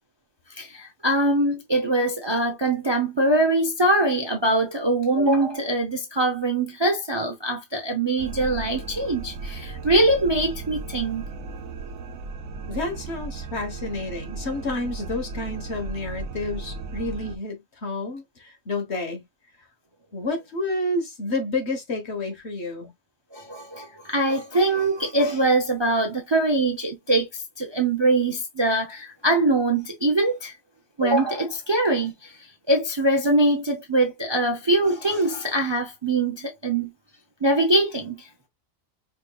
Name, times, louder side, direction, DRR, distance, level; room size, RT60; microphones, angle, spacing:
voice 1, 0.6-11.2 23.3-27.3 27.6-30.5 31.0-32.3 32.7-36.9 37.4-38.3, right 2 dB, 25° right, 0.6 m, -23 dB
sound 1, 8.2-17.4, right 3 dB, 85° right, 1.1 m, -36 dB
voice 2, 12.7-19.2 20.1-22.9, left 2 dB, 55° left, 1.5 m, -30 dB
5.1 x 3.0 x 2.3 m
omnidirectional pair, 1.4 m